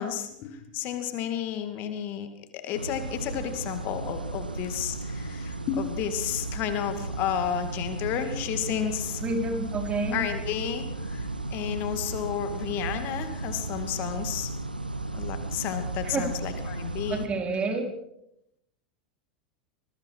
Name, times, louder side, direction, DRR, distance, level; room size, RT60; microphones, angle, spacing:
voice 1, 0.0-2.3 2.5-9.2 10.1-14.5 15.1-17.3, left 9 dB, 45° left, 8 dB, 2.6 m, -32 dB
sound 1, 2.7-17.3, right 2 dB, 85° right, 1.6 m, -35 dB
voice 2, 9.2-10.2 16.1-16.3 17.1-17.9, right 3 dB, 25° right, 4 dB, 4.6 m, -28 dB
26.0 x 22.0 x 4.9 m, 0.80 s
figure-of-eight pair, 85°, 5 cm